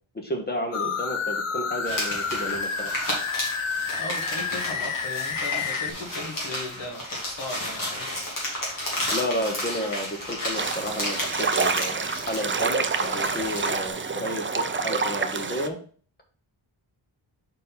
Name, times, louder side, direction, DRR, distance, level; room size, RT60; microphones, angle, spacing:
voice 1, 0.1-2.9 9.1-15.8, equal, 20° left, 2 dB, 1.3 m, -31 dB
sound 1, 0.7-5.9, left 6 dB, 90° left, 1.0 m, -29 dB
sound 2, 1.8-13.9, left 1 dB, 40° left, 2.4 m, -33 dB
voice 2, 4.0-8.1, left 2 dB, 60° left, 0 dB, 1.7 m, -37 dB
sound 3, 10.6-15.7, right 4 dB, 25° right, 0.4 m, -27 dB
5.2 x 4.2 x 5.7 m, 0.43 s
wide cardioid pair, 155°, 49 cm